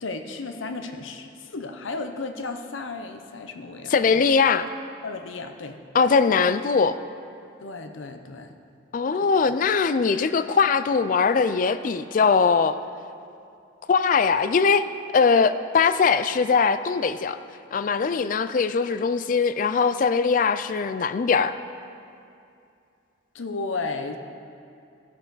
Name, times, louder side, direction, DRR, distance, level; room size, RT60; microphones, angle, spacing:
voice 1, 0.0-4.3 5.0-5.8 7.6-8.5 9.1-9.3 18.0-18.1 23.3-24.2, left 3 dB, 85° left, 7 dB, 0.7 m, -34 dB
voice 2, 3.9-4.7 5.9-7.0 8.9-12.8 13.9-14.8 15.1-17.4 17.7-21.5, left 5 dB, 45° left, 12 dB, 0.3 m, -21 dB
15.5 x 6.6 x 4.0 m, 2.5 s
head